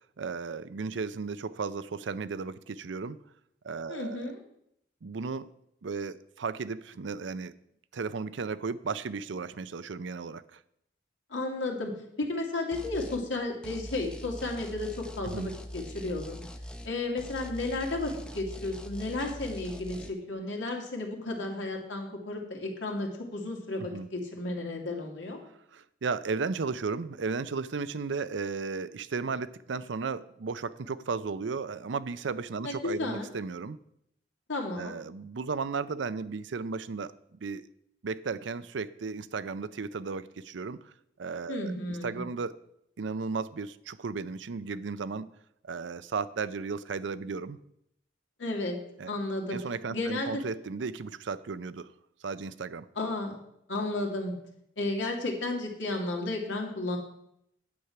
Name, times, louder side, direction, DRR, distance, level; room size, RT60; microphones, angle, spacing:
voice 1, 0.2-3.2 3.6-4.3 5.0-5.5 5.8-7.5 7.9-10.6 15.2-15.5 23.9-24.1 25.7-33.8 34.8-37.1 37.4-37.7 38.0-40.9 41.2-42.6 43.0-45.3 45.6-47.6 49.0-49.1 49.5-51.9 52.2-52.9, right 4 dB, 80° right, 0.5 m, -35 dB
voice 2, 3.9-4.4 11.3-11.9 12.2-16.4 16.8-25.4 32.6-33.3 34.5-35.0 41.5-42.2 48.4-48.8 49.1-49.6 49.9-50.4 53.0-53.4 53.7-54.3 54.8-57.0, left 2 dB, 90° left, 2.3 m, -33 dB
sound 1, 12.7-13.2 13.6-16.9 17.2-20.1, equal, 5° left, 0.6 m, -42 dB
9.5 x 8.1 x 5.8 m
head